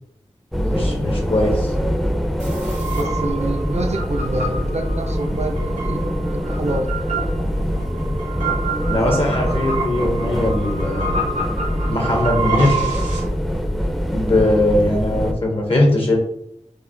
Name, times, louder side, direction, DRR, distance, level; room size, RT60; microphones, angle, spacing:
sound 1, 0.5-15.3, equal, ahead, 0.5 m, -24 dB
voice 1, 0.6-1.7 8.9-11.2 11.9-12.9 14.1-16.2, left 1 dB, 45° left, 1 dB, 0.7 m, -20 dB
sound 2, 2.4-13.2, right 3 dB, 75° right, 1.0 m, -28 dB
voice 2, 3.0-6.9 9.0-9.1, right 2 dB, 60° right, 4 dB, 0.6 m, -27 dB
4.7 x 2.0 x 2.6 m, 0.74 s
wide cardioid pair, 60°, 13 cm